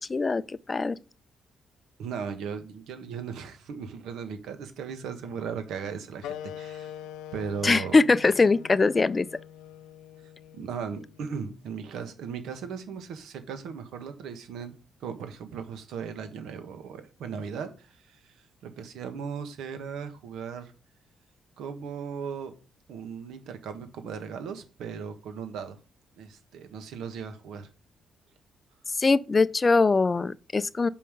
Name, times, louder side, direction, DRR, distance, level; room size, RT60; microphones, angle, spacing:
voice 1, 0.1-1.0 7.6-9.3 29.0-30.9, left 3 dB, 30° left, 0.4 m, -22 dB
voice 2, 2.0-6.9 7.3-8.0 10.5-14.7 15.0-20.7 21.6-22.5 22.9-25.8 26.2-27.7, right 6 dB, 80° right, 1.3 m, -37 dB
sound 1, 6.2-11.3, left 10 dB, 90° left, 0.5 m, -43 dB
5.4 x 5.3 x 6.5 m
cardioid pair, 90°, 0 cm